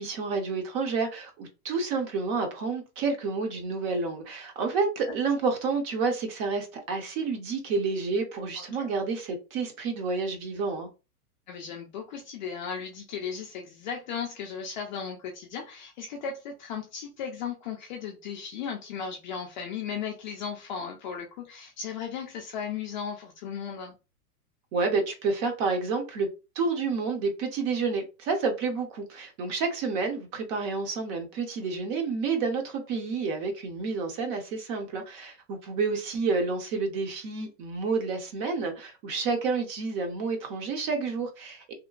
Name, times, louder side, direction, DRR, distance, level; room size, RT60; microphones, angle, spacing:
voice 1, 0.0-10.9 24.7-26.3 26.5-41.7, right 4 dB, 40° right, 0.8 m, -29 dB
voice 2, 8.6-8.9 11.5-23.9, left 6 dB, 35° left, 0.4 m, -36 dB
2.9 x 2.1 x 2.4 m
hypercardioid pair, 130°, 47 cm